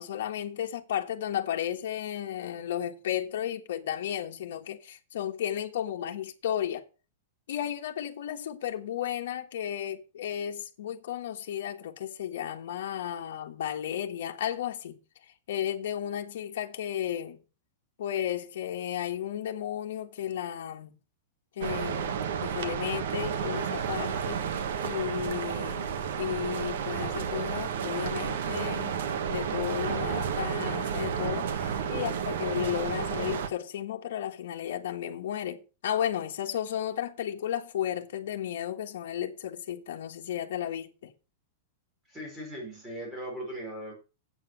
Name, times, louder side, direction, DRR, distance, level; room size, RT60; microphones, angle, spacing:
voice 1, 0.0-6.8 7.5-15.0 15.5-17.4 18.0-20.9 21.6-25.9 26.2-41.1, left 10 dB, 70° left, 1.4 m, -33 dB
sound 1, 21.6-33.5, right 7 dB, 65° right, 1.3 m, -31 dB
voice 2, 31.7-32.2 42.1-43.9, right 1 dB, 10° right, 4.6 m, -39 dB
8.3 x 7.4 x 5.9 m
supercardioid pair, 175°, 0 cm